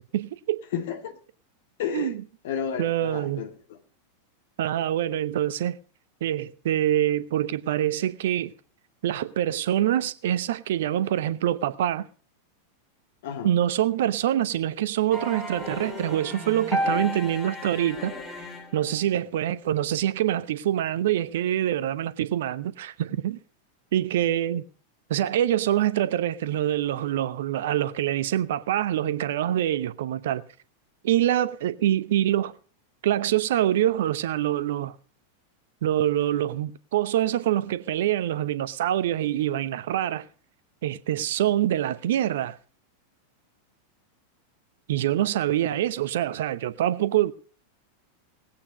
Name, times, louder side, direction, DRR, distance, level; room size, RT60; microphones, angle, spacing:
voice 1, 0.1-0.6 1.9-2.1 2.8-3.4 4.6-5.8 6.2-8.5 9.0-12.1 13.4-18.5 18.7-23.4 23.9-24.6 25.1-30.4 31.0-32.5 33.0-34.9 35.8-40.2 40.8-42.6 44.9-47.3, right 12 dB, 55° right, 0.8 m, -25 dB
voice 2, 0.7-1.2 1.8-2.1 2.4-3.8 13.2-13.5, left 8 dB, 55° left, 1.9 m, -32 dB
sound 1, 15.1-19.0, left 1 dB, 20° left, 3.1 m, -32 dB
19.0 x 8.7 x 5.2 m
figure-of-eight pair, 90°, 0 cm